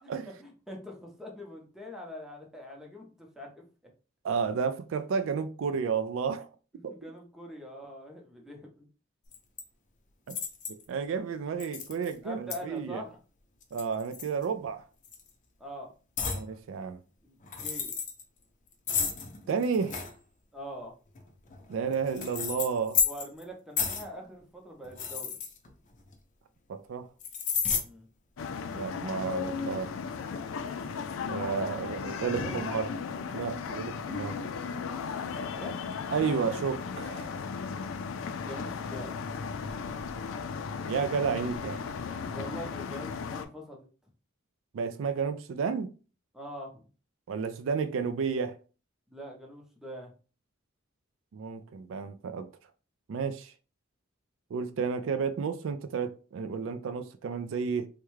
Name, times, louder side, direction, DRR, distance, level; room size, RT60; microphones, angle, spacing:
voice 1, 0.4-3.6 6.7-8.9 12.2-13.2 15.6-15.9 17.2-17.9 20.5-20.9 23.0-25.4 27.8-28.1 31.6-32.6 35.5-35.8 38.4-39.1 42.3-43.9 46.3-46.8 49.1-50.1, equal, ahead, 0.7 m, -43 dB
voice 2, 4.2-6.5 10.3-10.4 10.9-13.0 13.7-14.8 16.3-17.0 19.5-20.1 21.7-23.0 26.7-27.1 28.7-29.9 31.3-32.9 33.3-34.4 36.1-37.4 40.9-41.8 44.7-45.9 47.3-48.6 51.3-52.5 53.1-53.5 54.5-57.9, right 6 dB, 75° right, 0.3 m, -31 dB
sound 1, 9.3-9.6 10.3-10.8 11.6-12.1 12.5-12.6 13.6-14.7 15.0-15.3 16.2-16.5 17.4-18.2 18.9-20.1 21.2-23.4 23.8-24.1 24.8-26.1 27.2-27.8, left 6 dB, 40° left, 0.6 m, -32 dB
sound 2, 28.4-43.5, left 5 dB, 90° left, 0.4 m, -36 dB
3.5 x 2.2 x 3.1 m
head